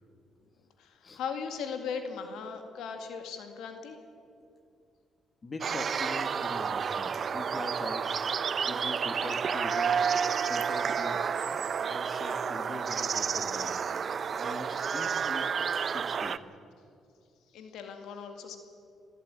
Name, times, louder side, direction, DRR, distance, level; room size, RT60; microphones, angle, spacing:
voice 1, 0.8-4.0 17.5-18.6, left 6 dB, 85° left, 6 dB, 2.1 m, -38 dB
voice 2, 5.4-8.3 8.7-10.0 10.4-11.4 11.9-16.4, left 3 dB, 35° left, 6 dB, 2.2 m, -43 dB
sound 1, 5.6-16.4, right 6 dB, 50° right, 0.7 m, -30 dB
23.0 x 13.5 x 9.0 m, 2.4 s
cardioid pair, 90°, 0 cm